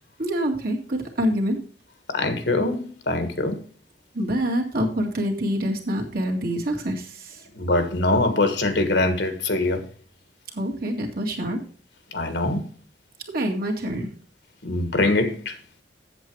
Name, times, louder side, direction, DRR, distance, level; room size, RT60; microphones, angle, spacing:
voice 1, 0.2-1.6 4.1-7.4 10.5-11.6 13.3-14.1, equal, 55° right, 2.0 m, -26 dB
voice 2, 2.1-3.6 7.6-9.8 12.1-12.6 14.6-15.6, left 2 dB, 75° left, 1.4 m, -23 dB
8.0 x 7.7 x 4.7 m
head